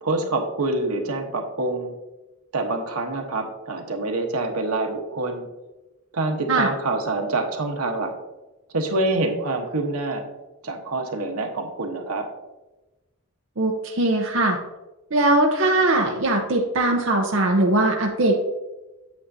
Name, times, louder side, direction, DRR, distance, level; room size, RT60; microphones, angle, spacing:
voice 1, 0.0-1.9 2.5-5.5 6.1-8.1 8.7-10.2 10.6-12.3, right 2 dB, 90° right, 3 dB, 1.2 m, -26 dB
voice 2, 13.6-14.6 15.1-18.4, right 2 dB, 60° right, 1 dB, 0.8 m, -20 dB
8.5 x 7.5 x 2.8 m, 1.1 s
head